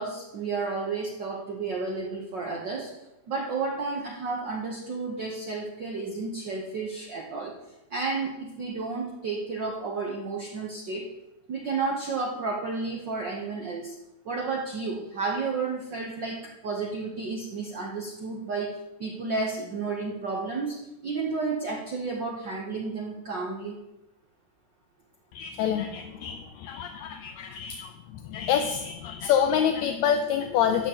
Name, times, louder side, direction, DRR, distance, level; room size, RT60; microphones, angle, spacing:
voice 1, 0.0-2.9 3.3-7.6 7.9-11.1 11.5-13.9 14.2-20.8 21.0-23.8, right 4 dB, 65° right, -1 dB, 1.1 m, -32 dB
voice 2, 25.3-30.9, left 8 dB, 80° left, 6 dB, 1.8 m, -27 dB
13.0 x 8.4 x 2.9 m, 0.94 s
omnidirectional pair, 3.3 m